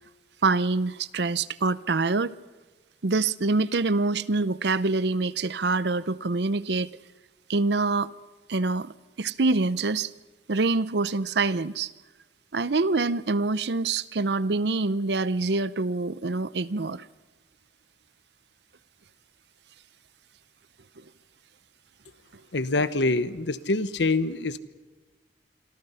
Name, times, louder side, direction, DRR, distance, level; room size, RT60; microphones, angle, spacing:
voice 1, 0.4-2.4 3.0-6.9 7.5-8.1 8.5-8.9 9.2-10.1 10.5-11.9 12.5-17.1, right 3 dB, 70° right, 0.7 m, -25 dB
voice 2, 22.5-24.6, left 3 dB, 80° left, 1.1 m, -25 dB
27.5 x 24.0 x 5.7 m
head